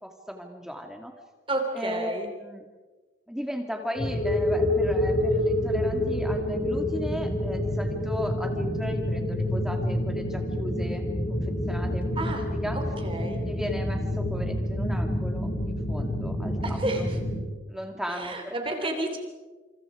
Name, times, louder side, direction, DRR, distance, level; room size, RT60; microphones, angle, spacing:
voice 1, 0.0-1.1 1.7-2.7 3.3-12.3 12.6-12.8 13.5-17.1 17.5-18.9, equal, 5° right, 3 dB, 2.3 m, -36 dB
voice 2, 1.5-2.3 12.2-12.4 12.7-13.4 16.6-17.2 18.1-19.2, right 2 dB, 30° right, 4 dB, 3.1 m, -31 dB
sound 1, 4.0-17.4, left 1 dB, 45° left, 5.9 m, -28 dB
28.0 x 27.5 x 5.0 m, 1.3 s
head